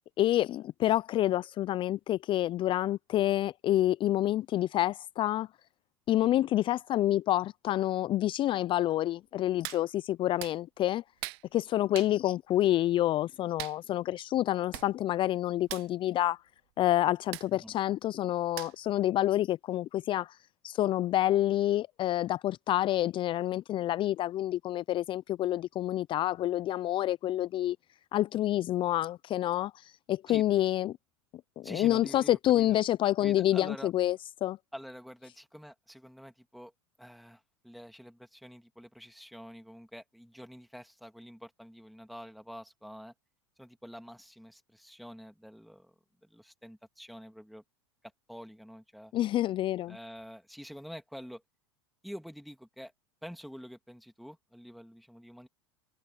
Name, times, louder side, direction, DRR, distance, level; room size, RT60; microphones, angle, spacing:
voice 1, 0.2-5.5 6.1-11.0 11.5-16.4 16.8-20.4 20.6-27.8 28.1-31.0 31.6-34.6 49.1-50.0, left 13 dB, 35° left, 0.5 m, -28 dB
voice 2, 6.2-6.5 12.0-12.2 17.5-17.8 30.3-30.4 31.6-32.8 33.2-33.9 34.7-36.7 37.0-43.1 43.6-45.9 46.2-47.6 48.3-49.1 49.9-51.4 52.0-52.9 53.2-55.5, equal, ahead, 3.1 m, -47 dB
Hands, 9.6-9.8 10.4-10.6 11.2-11.4 11.9-12.1 13.6-13.8 14.5-14.6 14.7-14.9 15.2-15.3 15.6-15.9 17.3-17.5 18.6-18.9 19.4-19.5, right 26 dB, 60° right, 0.8 m, -40 dB
hypercardioid pair, 90°, 14 cm